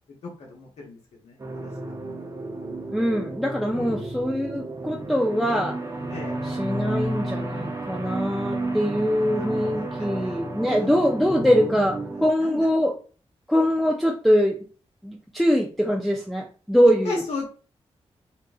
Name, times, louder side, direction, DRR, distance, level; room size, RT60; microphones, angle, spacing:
voice 1, 0.2-1.0 1.2-1.4 3.7-4.1 6.1-6.4 9.3-9.5 9.7-10.4 10.8-10.9 12.4-12.6 17.0-17.5, left 3 dB, 90° left, -2 dB, 0.9 m, -35 dB
sound 1, 1.4-12.3, right 1 dB, 30° right, 0.9 m, -32 dB
voice 2, 2.9-5.8 6.4-12.9 13.5-14.6 15.0-17.2, equal, ahead, 0 dB, 0.5 m, -23 dB
3.7 x 2.5 x 2.3 m, 0.39 s
cardioid pair, 80°, 11 cm